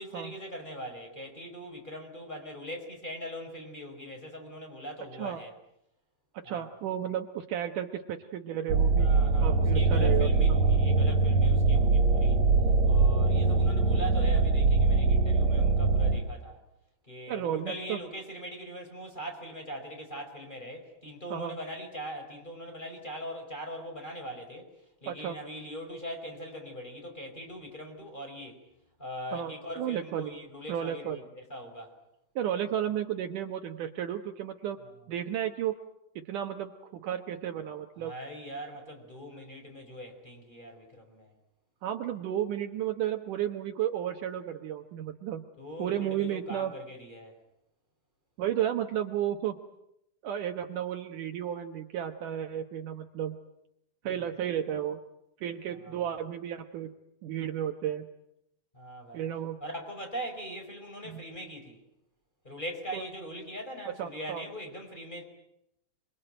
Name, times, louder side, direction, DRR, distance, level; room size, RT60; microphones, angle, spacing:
voice 1, 0.0-5.5 6.4-6.7 9.0-12.4 12.8-16.6 17.0-24.7 25.0-28.6 29.0-31.2 31.5-31.9 38.0-41.3 45.6-47.4 55.8-56.1 58.7-59.3 59.6-61.8 62.4-65.2, equal, 10° left, 3 dB, 5.3 m, -41 dB
voice 2, 6.4-9.1 9.4-10.6 17.3-18.0 21.3-21.6 25.1-25.4 29.3-30.3 30.7-31.2 32.4-34.8 35.1-35.8 36.2-38.1 41.8-45.4 45.8-46.7 48.4-49.6 50.2-53.4 54.0-55.0 55.4-56.9 57.2-58.1 59.1-59.6 61.1-61.2 62.9-63.0 63.9-64.4, right 10 dB, 65° right, 6 dB, 2.5 m, -33 dB
sound 1, 8.7-16.2, right 3 dB, 50° right, 3.9 m, -23 dB
27.0 x 24.0 x 9.1 m, 0.80 s
omnidirectional pair, 4.2 m